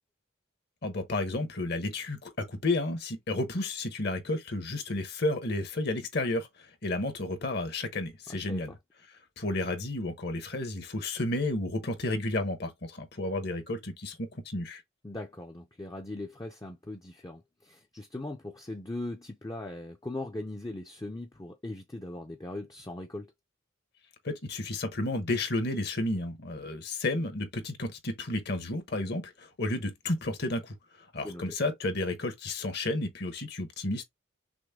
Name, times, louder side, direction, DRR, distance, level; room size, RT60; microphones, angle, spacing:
voice 1, 0.8-8.7 9.4-14.8 24.2-30.7 31.1-34.0, left 2 dB, 50° left, 1.0 m, -32 dB
voice 2, 8.3-8.8 15.0-23.3 31.2-31.4, left 2 dB, 15° left, 0.5 m, -39 dB
6.2 x 2.2 x 3.5 m
head